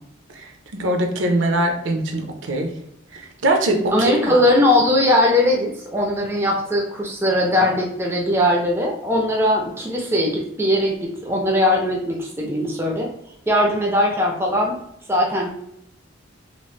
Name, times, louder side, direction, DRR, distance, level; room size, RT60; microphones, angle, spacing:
voice 1, 0.3-2.8 3.1-4.4, right 1 dB, 70° right, 3 dB, 0.5 m, -22 dB
voice 2, 3.9-13.1 13.5-14.8 15.1-15.5, left 1 dB, 10° right, 0 dB, 0.4 m, -20 dB
2.9 x 2.4 x 3.1 m, 0.77 s
head